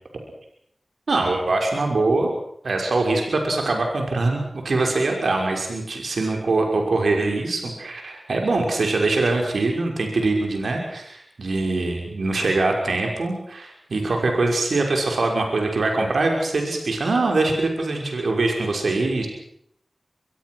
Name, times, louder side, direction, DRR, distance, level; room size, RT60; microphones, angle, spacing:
voice 1, 1.1-2.3 2.6-19.3, right 3 dB, 85° right, 2 dB, 5.9 m, -23 dB
25.5 x 22.0 x 6.4 m, 0.70 s
wide cardioid pair, 55°, 0 cm